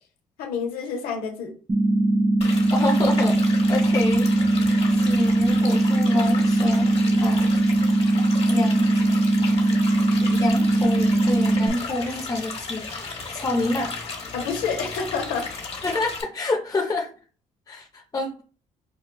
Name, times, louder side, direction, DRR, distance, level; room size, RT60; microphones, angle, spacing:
voice 1, 0.4-1.5 14.3-15.5, left 5 dB, 85° left, 4 dB, 0.9 m, -28 dB
sound 1, 1.7-11.7, right 2 dB, 20° right, 0.7 m, -20 dB
sound 2, 2.4-16.2, left 4 dB, 45° left, 1.5 m, -35 dB
voice 2, 2.7-3.4 3.7-7.5 8.5-8.9 10.3-14.0 15.8-17.1 17.7-18.4, left 2 dB, 25° left, 0 dB, 0.7 m, -27 dB
5.4 x 2.3 x 2.2 m, 0.39 s
supercardioid pair, 75°, 15 cm